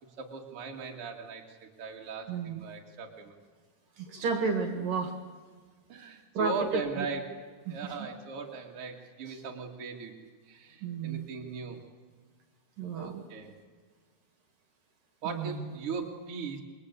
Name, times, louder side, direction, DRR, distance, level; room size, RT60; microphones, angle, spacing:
voice 1, 0.2-3.4 5.9-10.1 10.5-11.8 12.9-13.5 15.2-16.6, right 5 dB, 40° right, 0 dB, 3.0 m, -38 dB
voice 2, 2.3-2.6 4.0-5.1 6.3-6.5 7.0-7.1 7.7-7.9 10.8-11.2 12.8-13.2 15.2-15.6, right 5 dB, 60° right, 5 dB, 3.3 m, -32 dB
28.5 x 22.0 x 8.4 m, 1.6 s
omnidirectional pair, 4.6 m